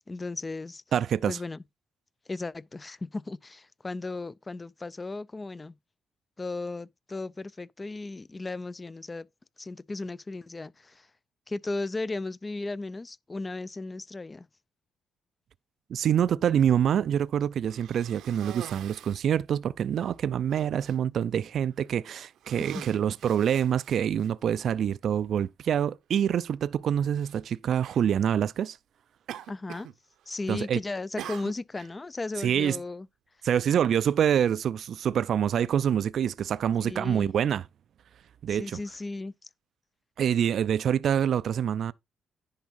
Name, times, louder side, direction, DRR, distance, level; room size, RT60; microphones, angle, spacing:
voice 1, 0.0-0.8 1.3-1.6 2.3-5.8 6.4-9.3 9.6-11.1 11.5-14.5 22.6-22.9 29.5-29.9 30.3-33.1 36.8-37.3 38.5-39.5, left 3 dB, 25° left, 0.4 m, -36 dB
voice 2, 0.9-1.4 15.9-28.8 30.5-30.8 32.4-32.8 33.4-37.7 38.4-38.8 40.2-41.9, right 9 dB, 65° right, 0.4 m, -26 dB
Cough, 17.6-19.3 20.0-20.1 20.5-21.0 21.7-22.0 22.4-24.3 25.2-25.3 27.2-27.4 27.8-28.1 29.3-30.0 30.2-30.6 31.2-31.9, right 11 dB, 80° right, 0.8 m, -44 dB
10.5 x 3.5 x 5.4 m
cardioid pair, 90°, 0 cm